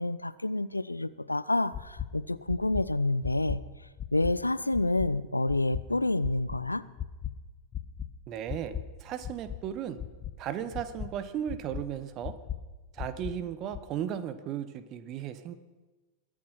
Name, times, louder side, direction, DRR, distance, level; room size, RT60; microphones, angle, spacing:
voice 1, 0.0-3.6 4.1-6.8, left 2 dB, 85° left, 17 dB, 0.4 m, -28 dB
sound 1, 1.7-2.1 2.5-2.8 3.2-3.6 4.0-4.3 4.7-5.1 5.5-5.8 6.2-6.6 7.0-7.3 7.7-8.1 8.5-8.8 9.2-9.6 10.0-10.3 10.7-11.1 11.5-11.8 12.2-12.6 13.0-13.3 13.7-13.8, left 10 dB, 25° left, 0.9 m, -36 dB
voice 2, 8.3-10.0 10.4-12.3 12.9-15.5, right 10 dB, 35° right, 13 dB, 0.9 m, -35 dB
21.5 x 7.4 x 5.6 m, 1.2 s
figure-of-eight pair, 90°, 0 cm